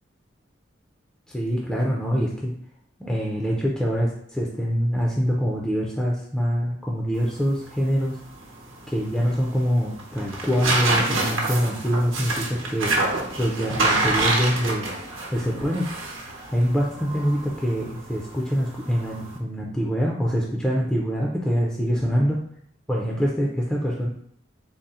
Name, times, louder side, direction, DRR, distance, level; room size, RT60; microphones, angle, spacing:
voice 1, 1.3-2.5 3.0-8.2 8.9-13.0 13.4-14.9 15.3-15.9 16.5-22.4 22.9-24.1, equal, 5° left, -4 dB, 0.4 m, -24 dB
sound 1, 7.1-19.4, right 2 dB, 80° right, 0.8 m, -28 dB
3.7 x 2.0 x 4.1 m, 0.67 s
head